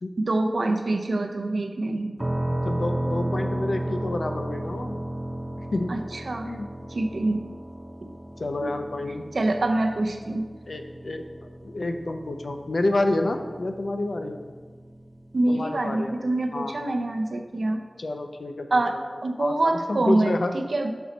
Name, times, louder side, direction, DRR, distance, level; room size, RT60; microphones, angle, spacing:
voice 1, 0.2-2.2 5.9-6.5 6.9-7.5 8.0-8.1 8.6-8.7 9.3-10.5 15.3-17.8 18.7-20.9, right 2 dB, 90° right, 5 dB, 0.5 m, -25 dB
sound 1, 2.2-15.9, right 1 dB, 25° right, 0.4 m, -34 dB
voice 2, 2.5-5.0 5.7-5.9 6.4-6.7 8.4-9.2 10.7-11.2 11.6-14.4 15.5-16.2 16.5-16.7 18.0-18.7 18.9-19.0 19.4-20.5, left 2 dB, 80° left, 6 dB, 0.5 m, -28 dB
6.2 x 4.1 x 5.1 m, 1.5 s
wide cardioid pair, 65°, 0 cm